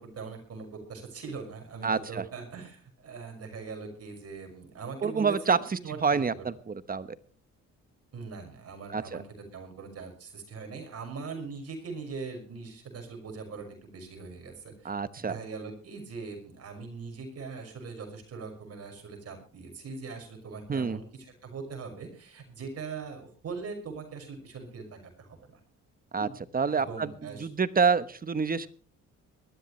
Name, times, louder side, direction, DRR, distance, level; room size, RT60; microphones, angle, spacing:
voice 1, 0.0-6.5 8.1-14.9 15.2-21.0 21.4-25.6 26.1-26.4 26.8-27.5, right 4 dB, 55° right, 4 dB, 6.0 m, -41 dB
voice 2, 1.8-2.2 5.0-7.1 8.9-9.2 14.8-15.4 20.7-21.0 26.1-26.3 26.5-28.7, right 5 dB, 30° right, 14 dB, 1.1 m, -27 dB
20.5 x 13.5 x 3.2 m, 0.40 s
cardioid pair, 90°, 30 cm